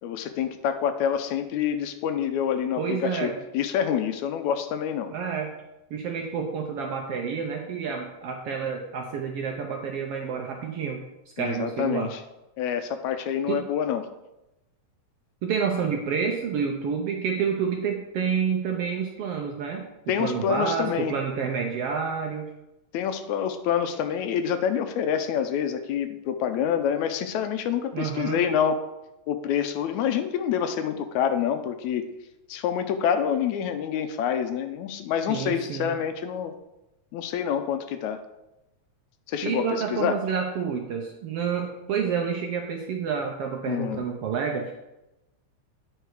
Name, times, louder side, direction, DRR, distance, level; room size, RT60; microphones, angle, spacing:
voice 1, 0.0-5.1 11.4-12.2 12.6-14.1 20.1-21.1 22.9-28.8 29.3-32.0 32.5-36.5 37.1-38.2 39.3-39.7 39.9-40.2 43.7-44.0, left 8 dB, 80° left, 8 dB, 1.9 m, -27 dB
voice 2, 2.8-3.3 5.1-5.5 5.9-11.0 11.4-12.1 13.5-13.6 15.4-19.9 20.2-22.5 27.9-28.4 35.3-35.9 39.4-44.7, right 6 dB, 70° right, 2 dB, 1.4 m, -29 dB
9.1 x 4.8 x 4.7 m, 0.93 s
omnidirectional pair, 3.4 m